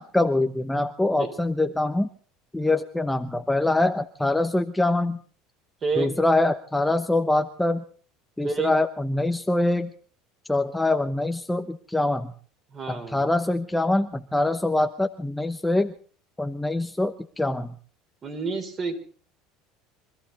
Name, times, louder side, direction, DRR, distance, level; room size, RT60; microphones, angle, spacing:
voice 1, 0.0-2.1 2.5-5.2 6.0-7.8 8.4-9.9 10.5-12.3 12.9-15.9 16.4-17.7, left 2 dB, 5° left, 7 dB, 0.9 m, -24 dB
voice 2, 12.7-13.3 18.2-19.0, right 5 dB, 35° right, 5 dB, 4.2 m, -29 dB
24.5 x 14.0 x 4.2 m, 0.43 s
supercardioid pair, 105°, 0 cm